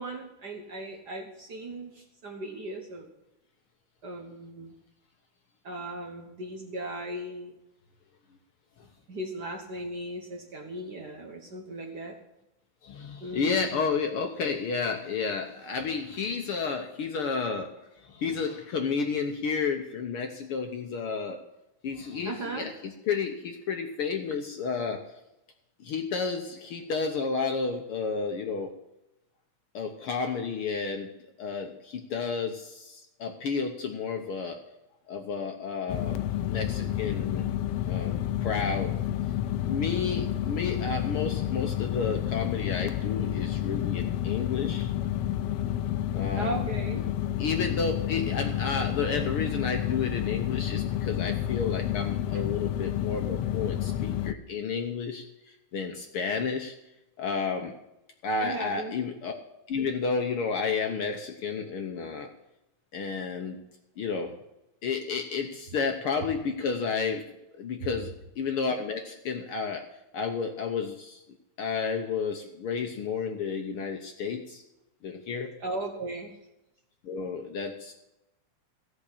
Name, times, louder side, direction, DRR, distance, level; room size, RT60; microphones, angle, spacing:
voice 1, 0.0-3.1 4.0-4.7 5.6-7.5 9.1-12.2 13.2-13.8 22.2-22.7 46.4-47.1 58.4-58.9 75.6-76.4, right 1 dB, 55° right, 3 dB, 1.2 m, -37 dB
voice 2, 12.8-17.8 18.0-21.4 21.8-25.0 25.8-28.7 29.7-34.6 35.1-36.2 36.5-37.5 37.8-38.9 39.6-44.9 46.1-46.5 47.4-56.7 57.2-57.7 58.2-59.3 59.7-62.3 62.9-63.6 64.0-64.4 64.8-67.2 67.6-69.8 70.1-71.2 71.6-74.6 75.0-75.5 77.0-77.9, left 5 dB, 65° left, 4 dB, 1.5 m, -31 dB
sound 1, 35.9-54.3, left 12 dB, 80° left, 1.4 m, -30 dB
16.0 x 6.0 x 8.3 m, 0.92 s
omnidirectional pair, 3.4 m